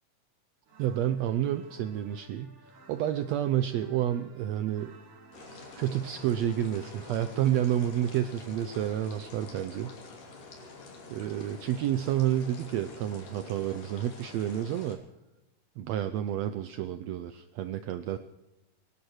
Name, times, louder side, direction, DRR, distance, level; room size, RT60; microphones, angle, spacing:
sound 1, 0.6-11.1, right 4 dB, 70° right, 4.1 m, -57 dB
voice 1, 0.8-2.6 2.9-4.9 5.8-9.9 11.1-15.0 15.8-18.2, right 11 dB, 90° right, 10 dB, 1.5 m, -30 dB
sound 2, 5.3-15.0, left 3 dB, 70° left, 4.4 m, -48 dB
26.0 x 11.0 x 4.9 m, 1.0 s
omnidirectional pair, 3.9 m